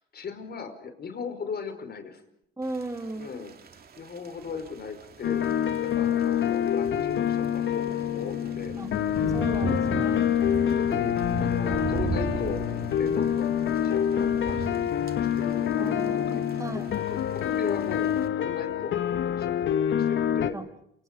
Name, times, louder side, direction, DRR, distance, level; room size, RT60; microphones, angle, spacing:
voice 1, 0.0-2.2 3.2-3.5 4.0-5.4 5.9-8.7 10.8-13.6 13.8-14.7 15.2-16.4 17.1-20.6, left 5 dB, 55° left, 8 dB, 5.0 m, -38 dB
voice 2, 2.6-3.3 8.8-8.9 9.3-10.3 15.8-16.9 20.5-20.7, right 2 dB, 15° right, 6 dB, 3.2 m, -36 dB
Thunder / Rain, 2.6-18.3, right 5 dB, 50° right, 2.7 m, -39 dB
sound 1, 5.2-20.5, left 9 dB, 75° left, 1.7 m, -26 dB
28.5 x 26.5 x 5.2 m, 0.77 s
cardioid pair, 90°, 20 cm